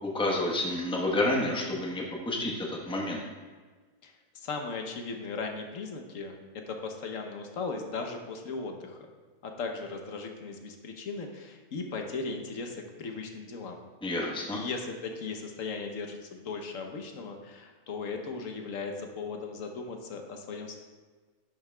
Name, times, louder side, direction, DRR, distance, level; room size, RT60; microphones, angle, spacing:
voice 1, 0.0-3.2 14.0-14.6, left 1 dB, 5° left, -2 dB, 0.8 m, -29 dB
voice 2, 4.0-6.4 6.7-9.0 9.4-13.8 14.5-20.8, left 4 dB, 75° left, 4 dB, 1.2 m, -37 dB
10.5 x 7.3 x 2.2 m, 1.4 s
omnidirectional pair, 1.4 m